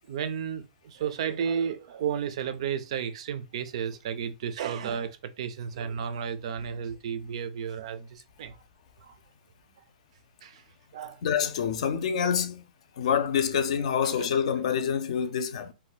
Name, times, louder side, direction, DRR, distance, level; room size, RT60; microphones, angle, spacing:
voice 1, 0.1-8.5 9.0-9.1 10.4-10.6 10.9-11.2, right 7 dB, 45° right, 0.4 m, -33 dB
voice 2, 11.2-12.6 13.0-15.7, left 7 dB, 45° left, 0.5 m, -26 dB
2.6 x 2.2 x 3.9 m
hypercardioid pair, 165°, 5 cm